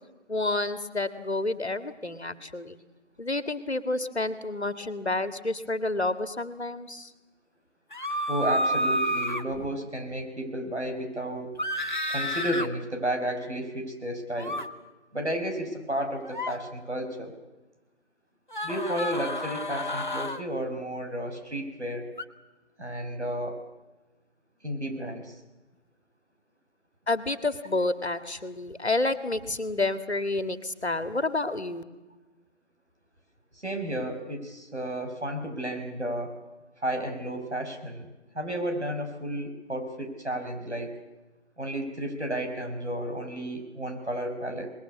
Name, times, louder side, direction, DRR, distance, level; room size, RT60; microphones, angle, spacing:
voice 1, 0.3-2.8 3.2-7.1 9.6-9.7 27.1-31.8, left 2 dB, 65° left, 11 dB, 1.9 m, -29 dB
sound 1, 7.9-9.4 11.6-12.7 14.4-14.6 16.2-16.6 18.5-20.4 22.2-22.3, equal, 40° left, 1.3 m, -30 dB
voice 2, 8.3-11.6 12.1-14.6 15.1-17.3 18.6-22.1 22.8-23.6 24.6-25.3 33.6-36.4 36.8-38.1 38.3-41.0 41.6-44.7, right 1 dB, 70° right, 4 dB, 5.5 m, -32 dB
24.5 x 20.5 x 8.4 m, 1.1 s
figure-of-eight pair, 170°, 35 cm